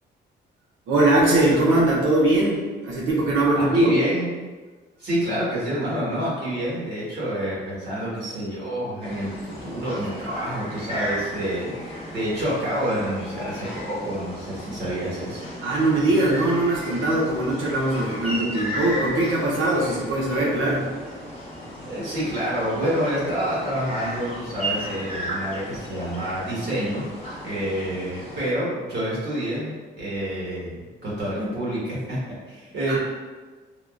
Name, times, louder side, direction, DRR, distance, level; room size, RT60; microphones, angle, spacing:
voice 1, 0.9-3.9 15.6-20.9 32.9-33.0, right 2 dB, 80° right, -4 dB, 0.7 m, -21 dB
voice 2, 3.5-4.3 5.0-15.4 21.9-27.0 27.4-33.0, equal, 55° right, -7 dB, 1.4 m, -28 dB
sound 1, 9.0-28.5, equal, 30° left, 1.0 m, -35 dB
3.5 x 2.2 x 2.4 m, 1.3 s
cardioid pair, 90°, 20 cm